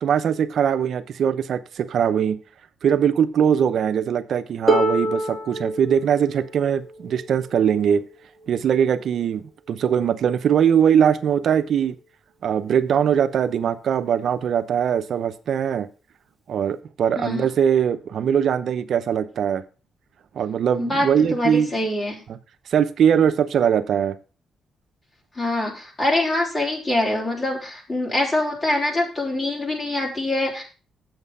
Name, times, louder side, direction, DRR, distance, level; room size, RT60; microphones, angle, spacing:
voice 1, 0.0-2.4 2.8-8.0 8.5-11.9 12.4-15.9 16.5-19.6 20.3-21.7 22.3-22.4 22.7-24.1, right 8 dB, 65° right, 0.7 m, -21 dB
Harp, 4.7-10.5 11.5-11.6, right 1 dB, ahead, 2.3 m, -29 dB
voice 2, 17.1-17.5 20.8-22.2 25.4-30.6, left 1 dB, 25° left, 3.8 m, -24 dB
7.9 x 7.4 x 5.5 m
cardioid pair, 105°, 0 cm